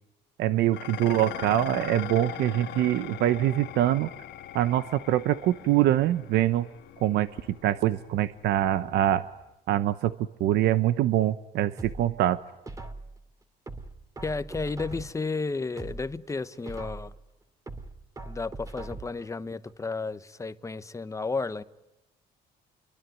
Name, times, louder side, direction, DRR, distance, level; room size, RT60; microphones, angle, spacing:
voice 1, 0.4-4.1 4.5-6.7 7.0-7.3 7.6-9.2 9.7-10.1 10.4-12.4, right 13 dB, 80° right, 1.0 m, -24 dB
Dishes pots and pans, 0.7-9.5, left 12 dB, 80° left, 1.5 m, -41 dB
sound 1, 11.8-13.2 13.7-15.3 15.7-17.2 17.7-19.3 19.7-19.8, right 2 dB, 20° right, 2.5 m, -41 dB
voice 2, 14.2-17.1 18.2-21.6, left 3 dB, 20° left, 1.1 m, -32 dB
27.5 x 23.0 x 9.4 m
cardioid pair, 110°, 17 cm